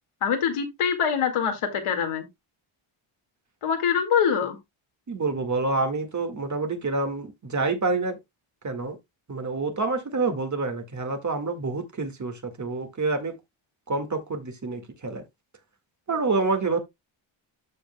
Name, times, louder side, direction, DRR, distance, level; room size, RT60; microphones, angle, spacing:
voice 1, 0.2-2.3 3.6-4.6, left 7 dB, 85° left, 2.1 m, -24 dB
voice 2, 5.1-8.2 8.6-9.0 9.3-13.3 13.9-15.2 16.1-16.8, right 3 dB, 35° right, 1.9 m, -27 dB
13.0 x 5.3 x 2.2 m
cardioid pair, 105°, 49 cm